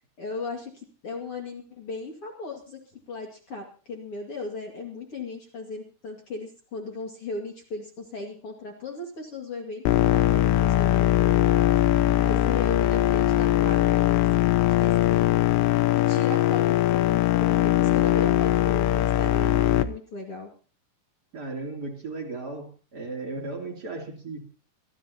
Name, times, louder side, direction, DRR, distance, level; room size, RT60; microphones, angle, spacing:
voice 1, 0.0-2.8 3.1-9.8 10.1-11.5 12.2-15.6 15.9-20.5, left 3 dB, 45° left, 1 dB, 2.0 m, -37 dB
sound 1, 9.9-19.8, left 13 dB, 75° left, 2.7 m, -21 dB
voice 2, 21.3-24.5, right 3 dB, 25° right, 2 dB, 2.6 m, -36 dB
23.5 x 14.5 x 2.9 m, 0.38 s
omnidirectional pair, 5.9 m